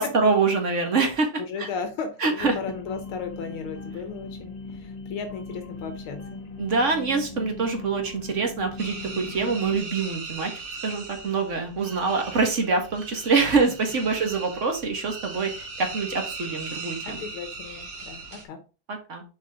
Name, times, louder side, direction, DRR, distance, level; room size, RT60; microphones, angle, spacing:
voice 1, 0.0-1.3 1.6-1.7 2.2-2.6 6.6-10.5 10.8-17.2 18.9-19.2, right 4 dB, 35° right, 4 dB, 1.8 m, -25 dB
voice 2, 1.4-6.4 17.0-18.6, left 5 dB, 80° left, 7 dB, 1.9 m, -35 dB
sound 1, 2.4-9.8, left 3 dB, 55° left, 0.4 m, -39 dB
sound 2, 8.8-18.4, right 3 dB, 75° right, 2.8 m, -38 dB
7.2 x 4.6 x 3.7 m, 0.33 s
omnidirectional pair, 2.3 m